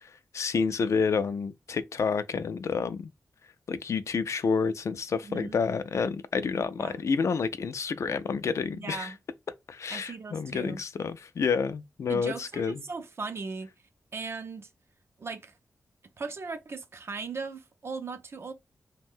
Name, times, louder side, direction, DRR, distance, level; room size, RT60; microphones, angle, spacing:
voice 1, 0.0-3.1 3.7-9.1 9.7-12.8, left 5 dB, 60° left, 0.3 m, -29 dB
voice 2, 5.2-5.6 6.8-7.0 8.7-9.2 9.9-10.8 12.1-13.7 14.1-14.7 15.2-15.5 16.2-18.5, right 4 dB, 45° right, 0.5 m, -38 dB
2.5 x 2.1 x 3.5 m
wide cardioid pair, 100°, 6 cm